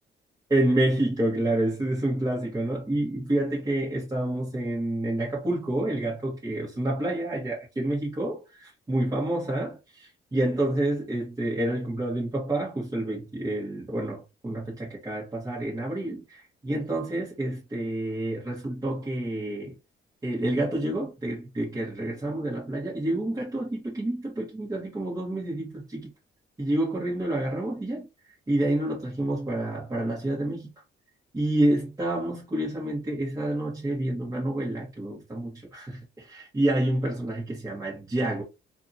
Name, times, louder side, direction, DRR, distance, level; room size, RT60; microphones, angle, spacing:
voice 1, 0.5-19.7 20.2-26.1 26.6-28.1 28.5-30.7 31.3-38.4, right 1 dB, 20° right, 1.2 m, -28 dB
2.8 x 2.7 x 2.6 m
cardioid pair, 90°, 20 cm